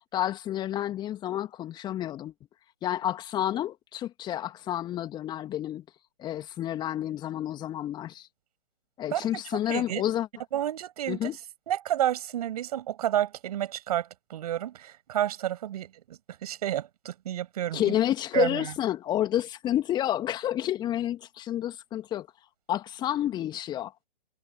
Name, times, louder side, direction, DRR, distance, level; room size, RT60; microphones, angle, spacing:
voice 1, 0.1-2.3 2.8-5.8 6.2-8.3 9.0-10.3 11.1-11.4 17.7-22.3 22.7-23.9, left 12 dB, 15° left, 2.4 m, -30 dB
voice 2, 9.7-10.0 10.5-11.4 11.7-17.9 18.3-18.7, right 12 dB, 40° right, 6.1 m, -30 dB
figure-of-eight pair, 130°, 29 cm